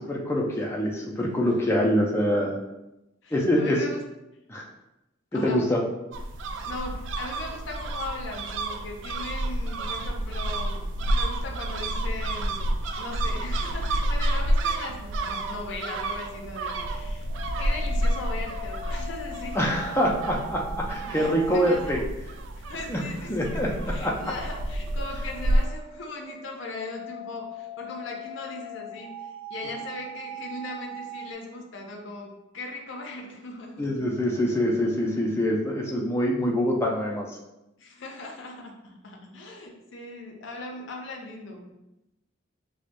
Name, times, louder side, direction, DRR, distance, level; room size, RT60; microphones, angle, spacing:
voice 1, 0.1-2.6 3.3-3.8 4.5-4.7 5.3-5.8 19.5-20.6 20.9-22.0 22.9-23.0 23.3-23.7 24.0-24.3 33.8-37.4, equal, 15° left, -2 dB, 0.4 m, -25 dB
voice 2, 1.1-1.8 3.2-4.1 5.3-5.6 6.7-10.8 11.1-17.3 17.6-20.1 20.3-21.9 22.6-34.1 37.8-41.7, left 2 dB, 65° left, 1 dB, 0.5 m, -39 dB
sound 1, 6.1-25.7, right 1 dB, 65° right, 0.3 m, -29 dB
sound 2, 14.6-22.0 24.0-31.3, right 1 dB, 30° right, 0.7 m, -41 dB
4.4 x 2.1 x 2.5 m, 0.93 s
head